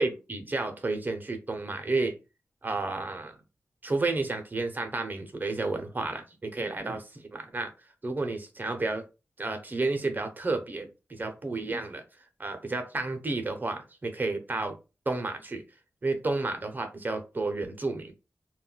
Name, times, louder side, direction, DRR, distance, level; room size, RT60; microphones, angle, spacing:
voice 1, 0.0-2.2 2.6-3.4 3.8-7.7 8.0-9.0 9.4-12.0 12.4-14.8 15.1-15.6 16.0-18.1, right 3 dB, 35° right, 0.6 m, -31 dB
2.2 x 2.2 x 3.8 m
wide cardioid pair, 70°, 5 cm